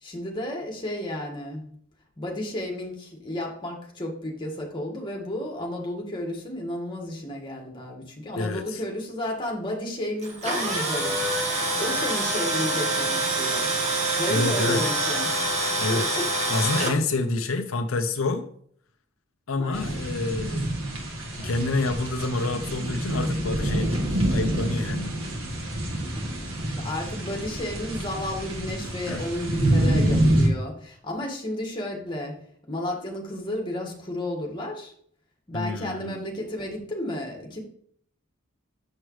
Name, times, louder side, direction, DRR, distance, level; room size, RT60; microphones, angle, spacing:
voice 1, 0.0-1.7 2.2-15.5 15.9-16.2 19.6-20.0 26.1-32.3 32.7-34.9 35.5-37.6, left 1 dB, 25° left, 0 dB, 1.7 m, -32 dB
voice 2, 8.4-8.8 14.3-14.8 15.8-16.1 16.5-18.5 19.5-20.7 21.4-25.2 29.1-29.2 35.5-36.2, left 3 dB, 80° left, 7 dB, 0.6 m, -28 dB
Tools, 10.2-16.9, right 2 dB, 35° right, 1.4 m, -26 dB
sound 1, 19.7-30.5, right 1 dB, 80° right, 1.6 m, -27 dB
7.3 x 6.3 x 3.1 m, 0.62 s
head